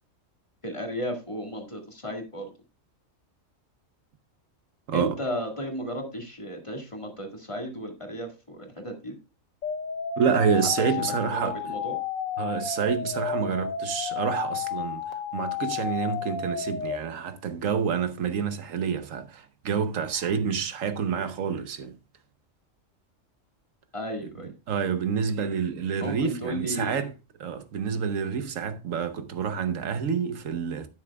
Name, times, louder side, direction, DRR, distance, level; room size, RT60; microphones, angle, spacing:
voice 1, 0.6-2.5 4.9-9.1 11.0-12.0 23.9-24.5 26.0-27.0, equal, 25° left, 1.9 m, -34 dB
voice 2, 4.9-5.2 10.2-11.8 12.4-15.0 15.3-21.9 24.2-24.3 24.7-27.1 27.4-30.9, right 6 dB, 75° right, 1.3 m, -28 dB
sound 1, 9.6-17.0, left 7 dB, 80° left, 1.2 m, -32 dB
11.0 x 9.5 x 2.3 m
omnidirectional pair, 1.4 m